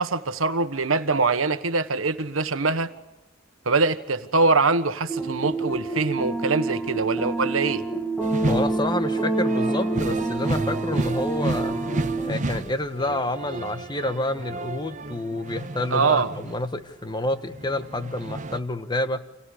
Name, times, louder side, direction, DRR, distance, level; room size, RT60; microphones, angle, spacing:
voice 1, 0.0-2.9 3.6-7.8 15.9-16.3, right 3 dB, 85° right, 1.4 m, -23 dB
sound 1, 5.1-12.3, right 2 dB, 5° left, 1.9 m, -27 dB
sound 2, 8.2-17.0 17.3-18.6, right 2 dB, 40° right, 1.0 m, -32 dB
voice 2, 8.5-11.8 12.2-19.2, left 2 dB, 20° left, 1.3 m, -28 dB
29.5 x 26.5 x 5.0 m
head